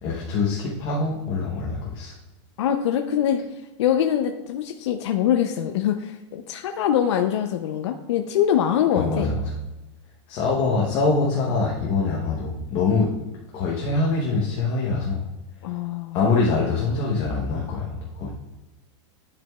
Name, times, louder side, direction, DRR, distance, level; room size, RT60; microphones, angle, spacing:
voice 1, 0.0-2.1 9.0-9.4 10.3-13.1 13.5-15.2 16.1-18.3, left 3 dB, 25° left, -3 dB, 0.8 m, -24 dB
voice 2, 2.6-3.4 3.8-9.3 15.6-16.2, left 10 dB, 65° left, 6 dB, 0.5 m, -23 dB
10.5 x 5.1 x 2.3 m, 1.1 s
supercardioid pair, 175°, 16 cm